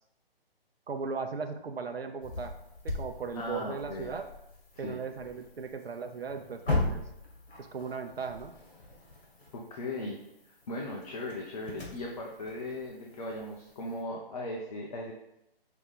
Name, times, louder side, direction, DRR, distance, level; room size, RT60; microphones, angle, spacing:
voice 1, 0.9-2.5 2.8-4.2 4.8-7.0 7.6-8.5, right 5 dB, 75° right, 5 dB, 0.8 m, -37 dB
sound 1, 2.2-14.0, left 2 dB, 65° left, 2.5 m, -39 dB
voice 2, 3.3-4.1 4.7-5.0 9.5-10.2 10.4-15.1, left 1 dB, 40° left, -1 dB, 0.9 m, -38 dB
5.8 x 3.2 x 5.5 m, 0.86 s
figure-of-eight pair, 150°, 30 cm